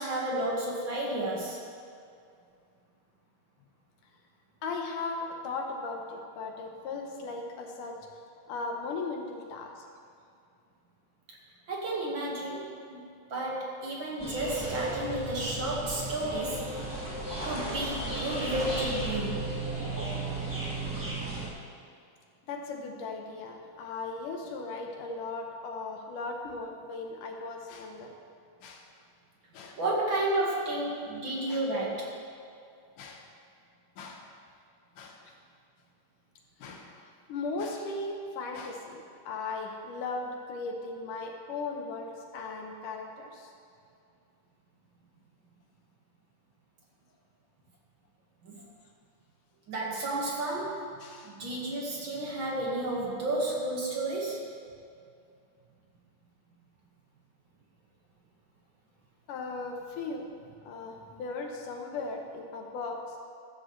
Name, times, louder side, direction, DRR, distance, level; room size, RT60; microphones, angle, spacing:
voice 1, 0.0-1.6 11.3-11.4 11.7-13.0 13.3-16.7 17.4-19.4 29.8-32.1 48.4-48.6 49.7-50.9 51.2-54.5, right 1 dB, 45° right, -3 dB, 1.9 m, -32 dB
voice 2, 4.6-8.0 8.5-9.9 22.5-28.1 28.6-28.9 29.5-29.8 31.5-31.6 33.0-33.2 34.0-34.2 35.0-35.2 36.6-43.5 51.0-51.3 59.3-60.3 60.6-63.2, left 3 dB, 70° left, 2 dB, 2.4 m, -37 dB
sound 1, 14.2-21.5, right 2 dB, 10° right, 0.9 m, -34 dB
15.0 x 13.5 x 3.3 m, 2.4 s
omnidirectional pair, 4.1 m